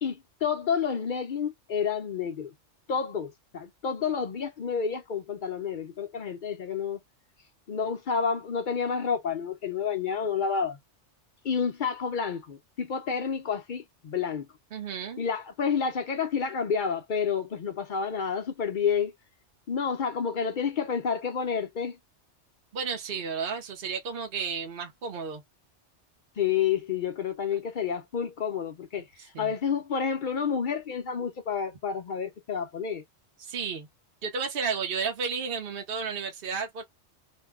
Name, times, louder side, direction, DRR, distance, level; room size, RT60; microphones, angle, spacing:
voice 1, 0.0-2.5 2.9-7.0 7.7-10.8 11.4-14.5 15.2-19.1 19.7-22.0 26.4-29.1 29.4-33.0, left 6 dB, 55° left, 0.6 m, -29 dB
voice 2, 14.7-15.2 22.7-25.4 29.3-29.5 33.4-33.9 34.2-36.8, right 5 dB, 55° right, 0.9 m, -32 dB
2.6 x 2.1 x 3.4 m
omnidirectional pair, 1.2 m